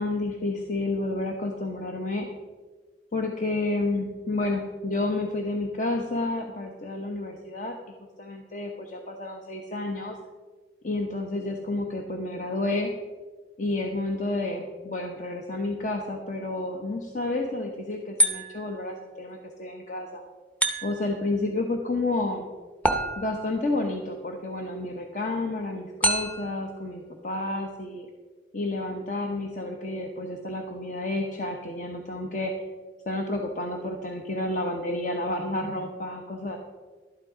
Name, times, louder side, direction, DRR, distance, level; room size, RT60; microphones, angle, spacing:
voice 1, 0.0-2.3 3.1-7.7 8.2-10.2 10.8-12.9 13.6-20.2 20.8-22.4 23.2-28.1 28.5-32.5 33.1-36.6, left 2 dB, 45° left, 2 dB, 0.9 m, -30 dB
sound 1, 18.2-18.8 20.6-21.2 22.8-23.6 26.0-26.6, right 1 dB, 10° left, 0.8 m, -27 dB
12.0 x 8.9 x 4.9 m, 1.4 s
head